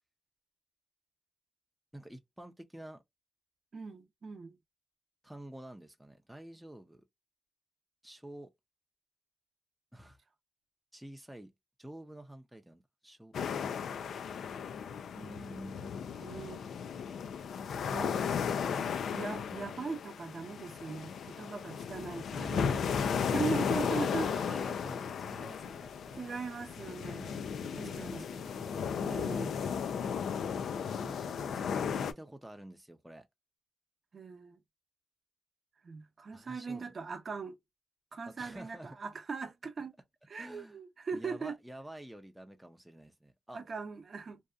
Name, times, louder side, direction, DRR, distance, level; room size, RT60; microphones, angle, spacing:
voice 1, 1.9-3.0 5.2-7.0 8.0-8.5 9.9-10.2 10.9-11.5 11.8-13.3 15.1-15.9 18.1-18.4 18.7-18.9 22.4-23.3 23.8-26.3 27.2-28.8 30.9-33.3 36.3-36.9 38.2-39.0 40.4-40.8 41.1-43.6, right 1 dB, 5° right, 0.5 m, -49 dB
voice 2, 3.7-4.6 16.2-16.6 17.9-18.1 19.1-22.8 23.3-24.3 26.2-27.2 27.6-28.3 29.0-29.6 34.1-34.6 35.8-37.6 38.1-39.9 40.3-41.5 43.5-44.4, right 5 dB, 50° right, 0.7 m, -39 dB
sound 1, 13.3-32.1, left 7 dB, 75° left, 0.3 m, -35 dB
2.7 x 2.3 x 2.2 m
cardioid pair, 90°, 0 cm